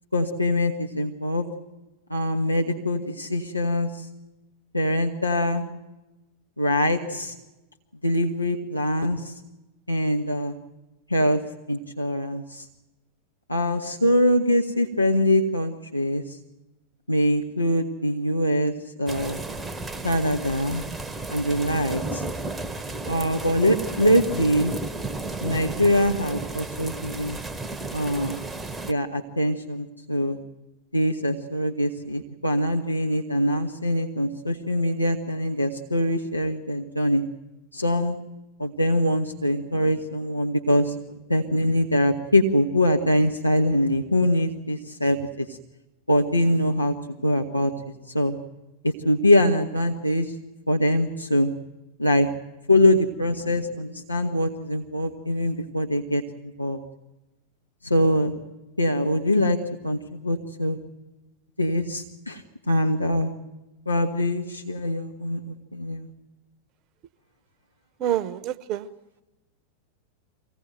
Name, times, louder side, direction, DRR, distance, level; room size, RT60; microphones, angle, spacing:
voice 1, 0.1-1.5 2.1-4.1 4.7-5.7 6.6-7.3 8.0-9.3 9.9-10.6 11.1-11.4 11.7-12.7 13.5-16.4 17.1-19.4 20.0-20.8 21.3-22.2 23.0-24.7 25.4-27.4 27.9-28.4 28.9-30.4 30.9-37.2 37.7-38.2 38.6-40.9 41.3-45.6 46.1-46.9 47.2-47.7 48.1-48.4 48.8-50.3 50.7-51.5 52.0-52.3 52.7-56.8 57.8-58.3 58.8-59.6 59.8-60.8 61.6-63.3 63.9-66.1, left 1 dB, 85° left, 3 dB, 1.1 m, -23 dB
sound 1, 19.1-28.9, right 2 dB, 10° right, 0.9 m, -33 dB
voice 2, 68.0-68.9, right 11 dB, 40° right, 17 dB, 0.8 m, -27 dB
24.5 x 16.5 x 9.1 m, 1.1 s
figure-of-eight pair, 90°, 0 cm